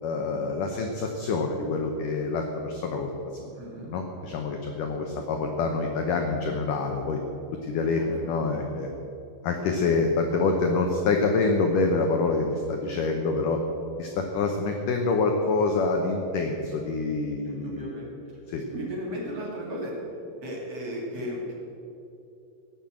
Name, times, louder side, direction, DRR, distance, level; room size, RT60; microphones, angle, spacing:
voice 1, 0.0-3.1 3.4-3.5 3.8-7.2 7.6-8.9 9.4-13.6 14.0-17.9 18.5-18.6, left 3 dB, 85° left, 3 dB, 1.8 m, -26 dB
voice 2, 3.6-3.9 8.0-8.2 17.4-18.1 18.7-19.9 20.4-21.6, equal, 40° right, -3 dB, 2.9 m, -35 dB
17.5 x 7.3 x 7.5 m, 2.8 s
omnidirectional pair, 5.1 m